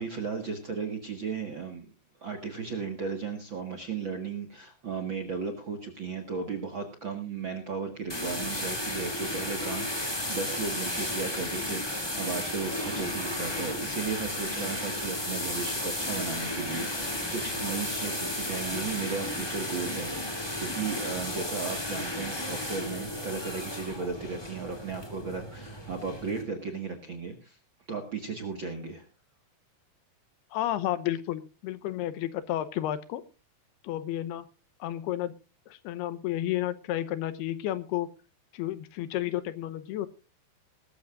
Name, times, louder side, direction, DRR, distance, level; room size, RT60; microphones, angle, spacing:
voice 1, 0.0-1.9 2.2-27.6 27.9-29.0, right 5 dB, 50° right, 5 dB, 1.5 m, -35 dB
sound 1, 8.1-26.4, left 1 dB, 10° left, 1.3 m, -33 dB
voice 2, 30.5-33.2 33.8-34.5 34.8-35.4 35.7-38.1 38.5-40.1, left 13 dB, 80° left, 12 dB, 2.8 m, -31 dB
20.0 x 13.5 x 2.5 m, 0.31 s
omnidirectional pair, 4.6 m